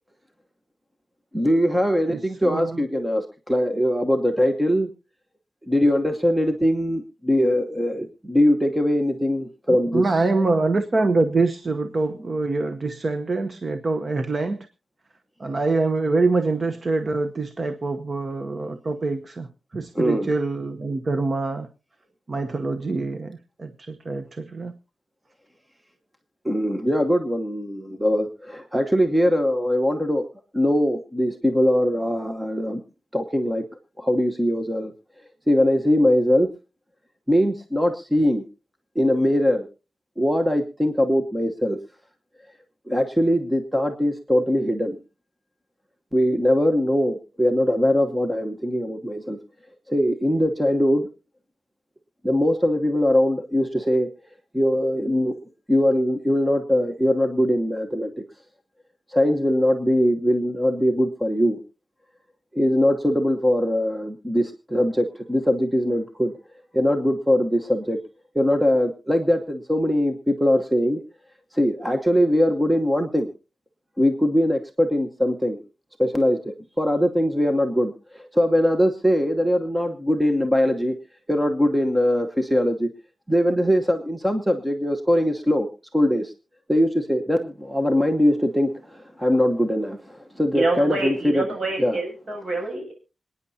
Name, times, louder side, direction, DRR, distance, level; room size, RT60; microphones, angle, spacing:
voice 1, 1.3-4.9 5.7-10.5 19.9-20.3 26.4-30.3 30.5-32.8 33.1-33.6 34.0-34.9 35.5-36.5 37.3-38.4 38.9-39.7 40.2-41.8 42.9-45.0 46.1-49.4 49.9-51.1 52.2-54.1 54.5-55.3 55.7-58.1 59.1-61.6 62.5-66.3 66.7-68.0 68.3-71.0 71.5-73.3 74.0-75.6 76.0-80.9 81.3-82.9 83.3-86.3 86.7-91.4 91.8-92.0, equal, 5° right, 1.0 m, -21 dB
voice 2, 2.1-2.9 9.7-14.7 15.4-21.7 22.3-24.8, right 3 dB, 35° right, 0.8 m, -25 dB
voice 3, 90.5-92.9, right 2 dB, 50° right, 7.2 m, -27 dB
26.5 x 9.6 x 2.7 m
wide cardioid pair, 155°, 0 cm